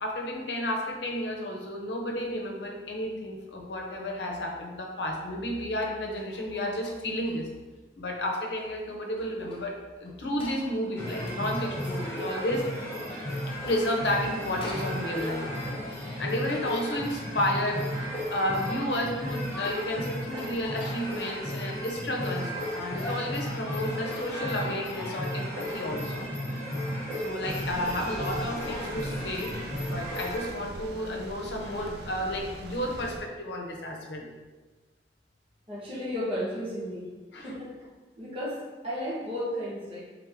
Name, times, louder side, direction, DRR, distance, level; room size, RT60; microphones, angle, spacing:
voice 1, 0.0-7.5 8.0-12.7 13.6-15.5 16.2-17.9 18.3-26.3 27.2-29.6 29.8-34.3 37.3-37.5, left 1 dB, 70° left, 1 dB, 0.8 m, -32 dB
sound 1, 4.4-4.6 5.8-7.6 8.1-10.8 11.1-13.1 13.4-15.1 17.1-18.1 19.0-19.5 19.9-20.0 20.4-21.0 21.5-23.7, left 1 dB, 30° left, 0.6 m, -50 dB
sound 2, 11.0-30.5, equal, 15° left, 1.1 m, -34 dB
sound 3, 27.4-33.2, right 2 dB, 60° right, 0.4 m, -41 dB
voice 2, 35.7-37.1 37.4-37.9 38.2-40.0, equal, 30° right, -7 dB, 1.3 m, -34 dB
3.5 x 3.5 x 3.6 m, 1.3 s
head